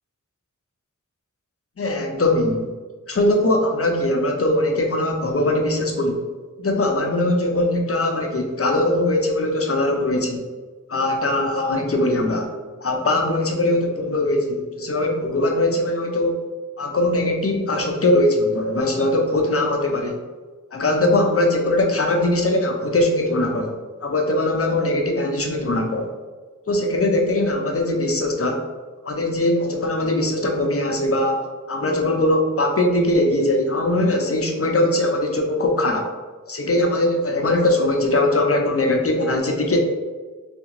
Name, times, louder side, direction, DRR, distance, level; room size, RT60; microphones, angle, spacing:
voice 1, 1.8-2.7 3.1-6.2 6.6-10.4 10.9-12.5 12.8-16.4 16.8-20.2 20.7-23.7 24.0-26.1 26.7-28.6 29.0-31.4 31.7-36.1 36.5-39.8, left 1 dB, 45° left, 2 dB, 0.5 m, -21 dB
3.3 x 2.5 x 2.9 m, 1.4 s
wide cardioid pair, 45°, 32 cm